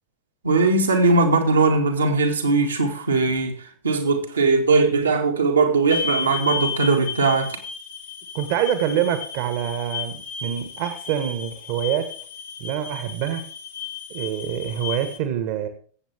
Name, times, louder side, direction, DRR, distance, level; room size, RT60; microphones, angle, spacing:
voice 1, 0.4-3.6 3.8-7.6, right 3 dB, 75° right, 2.0 m, -19 dB
sound 1, 5.9-15.2, left 6 dB, 65° left, 2.5 m, -33 dB
voice 2, 8.3-12.1 12.6-13.4 14.1-15.7, right 10 dB, 50° right, 1.5 m, -26 dB
21.5 x 8.1 x 3.6 m
figure-of-eight pair, 90°, 0 cm